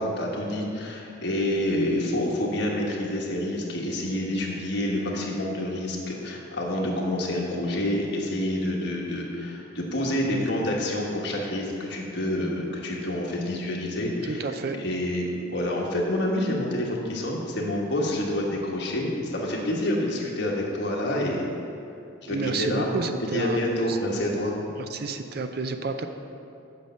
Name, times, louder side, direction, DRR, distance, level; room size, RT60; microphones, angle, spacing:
voice 1, 0.0-14.4 14.8-21.5 22.2-22.9 23.3-24.5, left 1 dB, 55° left, -2 dB, 1.5 m, -28 dB
voice 2, 14.3-14.8 22.3-24.0 24.8-26.1, right 4 dB, 50° right, 8 dB, 0.5 m, -30 dB
8.5 x 6.0 x 6.5 m, 2.7 s
head